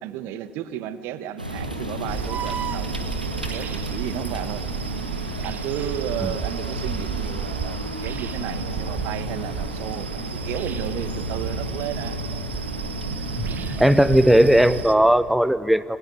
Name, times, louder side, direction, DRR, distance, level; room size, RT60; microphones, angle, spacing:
voice 1, 0.0-2.9 3.5-4.6 5.4-12.2 13.1-13.6 13.9-14.0, right 11 dB, 55° right, 15 dB, 1.1 m, -33 dB
sound 1, 1.4-14.8, right 1 dB, 90° right, 1.6 m, -31 dB
sound 2, 2.1-15.0, right 9 dB, 40° right, 0.8 m, -34 dB
voice 2, 13.8-16.0, right 1 dB, ahead, 16 dB, 0.6 m, -17 dB
27.0 x 21.5 x 9.4 m, 2.6 s
figure-of-eight pair, 55°, 5 cm